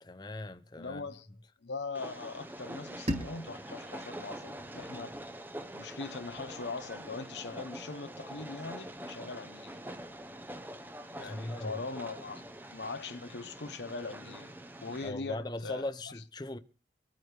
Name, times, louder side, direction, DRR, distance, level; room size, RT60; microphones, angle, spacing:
voice 1, 0.0-1.1 11.2-11.8 15.0-16.6, left 1 dB, 25° left, 0.6 m, -39 dB
voice 2, 0.8-1.3 1.6-5.1 5.7-9.8 11.1-14.5 14.8-15.9, left 3 dB, 80° left, 0.8 m, -41 dB
Train, 1.9-15.1, right 1 dB, 10° right, 0.7 m, -45 dB
sound 1, 3.1-6.0, equal, 40° right, 3.8 m, -40 dB
25.0 x 9.0 x 3.3 m
head